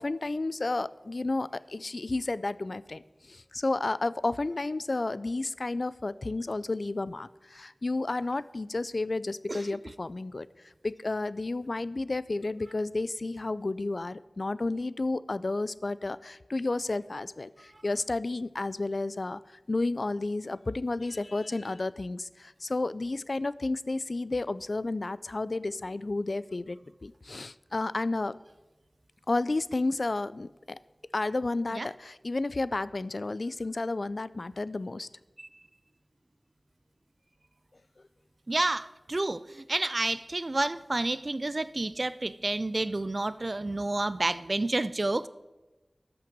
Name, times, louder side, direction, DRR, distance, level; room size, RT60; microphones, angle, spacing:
voice 1, 0.0-10.5 10.8-19.4 19.7-28.4 29.3-30.8 31.1-35.1, left 2 dB, 65° left, 17 dB, 0.3 m, -32 dB
voice 2, 38.5-45.3, right 2 dB, 50° right, 15 dB, 0.3 m, -30 dB
13.5 x 5.9 x 5.2 m, 1.1 s
wide cardioid pair, 60°, 0 cm